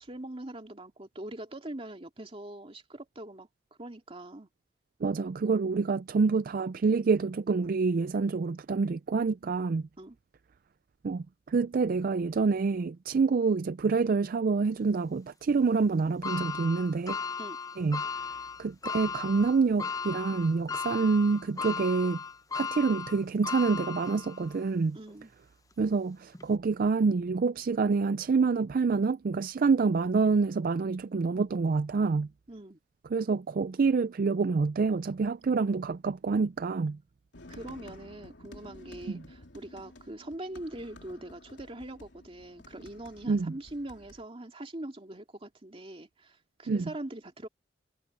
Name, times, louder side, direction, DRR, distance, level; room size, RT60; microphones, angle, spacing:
voice 1, 0.0-3.5 3.8-4.5 10.0-10.2 13.2-13.3 17.4-17.6 24.9-25.3 32.5-32.8 37.5-47.5, right 1 dB, 30° right, 2.6 m, -42 dB
voice 2, 5.0-9.9 11.0-17.2 17.8-18.0 18.6-22.2 22.5-25.0 25.8-32.3 33.1-37.0 39.1-39.2 43.3-43.5 46.7-46.9, right 4 dB, 50° right, 0.4 m, -27 dB
sound 1, 16.2-24.6 25.1-25.2 26.3-26.4, left 5 dB, 20° left, 0.7 m, -36 dB
sound 2, 37.3-44.2, left 1 dB, 85° left, 3.1 m, -51 dB
head